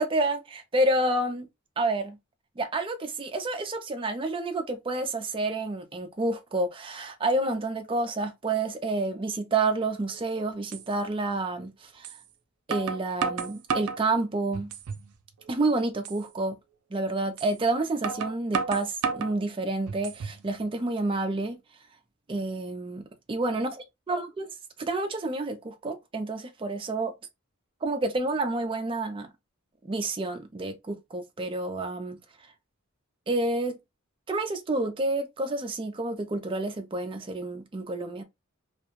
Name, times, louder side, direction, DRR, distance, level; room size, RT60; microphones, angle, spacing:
voice 1, 0.0-1.5 1.8-2.2 2.6-12.1 12.7-14.7 15.5-16.6 16.9-21.6 22.3-23.0 23.3-23.7 24.1-24.4 24.8-27.1 27.8-29.3 29.8-32.2 33.3-33.7 34.3-38.2, right 2 dB, 25° right, 0.4 m, -29 dB
sound 1, 10.1-10.2 10.7-10.9 12.0-12.2 12.7-14.0 14.5-15.1 15.5-15.6 16.0-16.2 17.4-17.5 18.0-19.4 19.9-20.4, right 5 dB, 85° right, 0.4 m, -31 dB
2.4 x 2.1 x 3.0 m
head